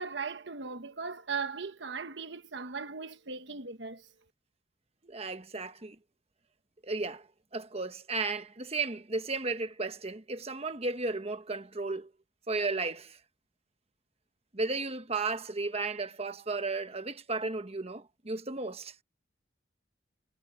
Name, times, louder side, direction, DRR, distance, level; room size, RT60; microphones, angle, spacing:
voice 1, 0.0-4.0, right 5 dB, 60° right, 1.2 m, -38 dB
voice 2, 5.0-6.0 6.8-7.3 7.5-12.1 12.5-13.2 14.5-18.9, right 3 dB, 30° right, 1.2 m, -34 dB
head